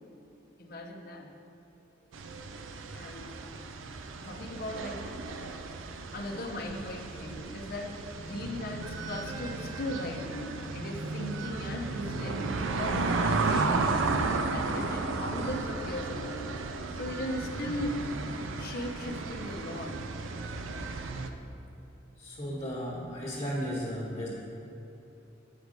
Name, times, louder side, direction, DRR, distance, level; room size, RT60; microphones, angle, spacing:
voice 1, 0.6-1.3 2.9-3.3 4.2-5.1 6.1-14.1 14.4-16.5 16.9-18.1 18.6-20.1, left 1 dB, 50° left, 2 dB, 0.7 m, -38 dB
sound 1, 2.1-21.3, right 3 dB, 90° right, 0.5 m, -34 dB
voice 2, 22.2-24.3, equal, 30° left, -8 dB, 1.4 m, -35 dB
8.4 x 4.8 x 5.2 m, 2.9 s
head